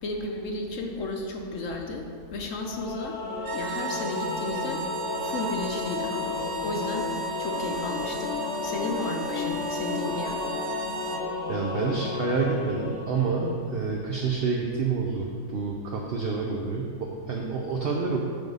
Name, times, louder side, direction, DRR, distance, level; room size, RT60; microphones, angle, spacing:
voice 1, 0.0-3.2 3.5-4.8 5.2-7.1 7.4-8.3 8.6-10.4, left 2 dB, 60° left, 2 dB, 1.0 m, -33 dB
Singing / Musical instrument, 2.6-13.9, left 4 dB, 90° left, 1.4 m, -33 dB
sound 1, 3.4-11.3, right 5 dB, 70° right, 1.0 m, -36 dB
voice 2, 11.5-18.2, right 4 dB, 55° right, -1 dB, 0.7 m, -28 dB
9.0 x 3.7 x 5.4 m, 2.1 s
omnidirectional pair, 1.6 m